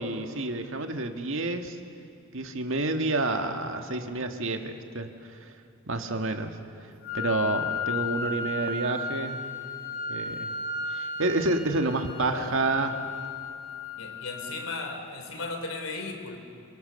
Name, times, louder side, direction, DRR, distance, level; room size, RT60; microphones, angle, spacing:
voice 1, 0.0-1.8 2.3-5.1 5.9-6.6 7.1-9.4 10.1-10.5 10.9-13.1, right 2 dB, 70° right, 6 dB, 1.8 m, -29 dB
Wind instrument woodwind instrument, 7.0-15.0, left 3 dB, 65° left, 3.9 m, -35 dB
voice 2, 12.2-12.7 13.9-16.4, left 3 dB, 85° left, 5 dB, 3.4 m, -36 dB
29.0 x 24.0 x 6.9 m, 2.7 s
head